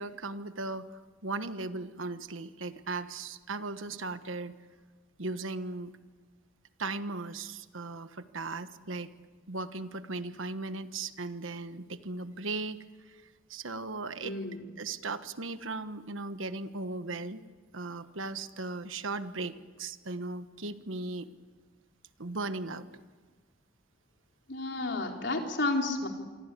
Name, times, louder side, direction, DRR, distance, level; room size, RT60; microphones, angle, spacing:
voice 1, 0.0-4.6 5.2-6.0 6.8-9.1 9.5-13.2 13.5-14.4 14.8-17.4 17.7-21.3 22.2-23.0, right 3 dB, 80° right, 11 dB, 1.3 m, -37 dB
voice 2, 14.2-14.7 24.5-26.1, left 2 dB, 60° left, 2 dB, 3.9 m, -31 dB
27.5 x 24.0 x 8.4 m, 1.4 s
head